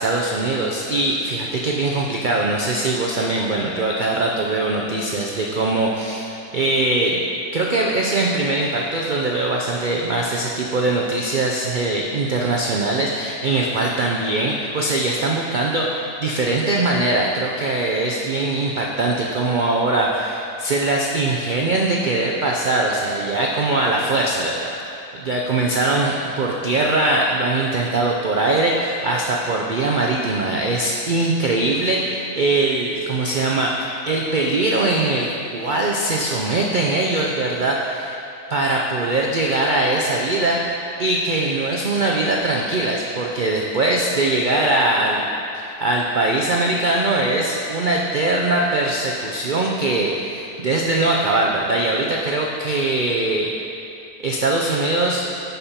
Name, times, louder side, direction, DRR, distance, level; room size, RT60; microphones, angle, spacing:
voice 1, 0.0-7.2 7.5-24.7 25.1-38.2 38.5-45.3 45.5-53.5 54.2-55.2, right 2 dB, 90° right, -1 dB, 0.4 m, -21 dB
9.9 x 5.2 x 4.3 m, 2.7 s
omnidirectional pair, 1.6 m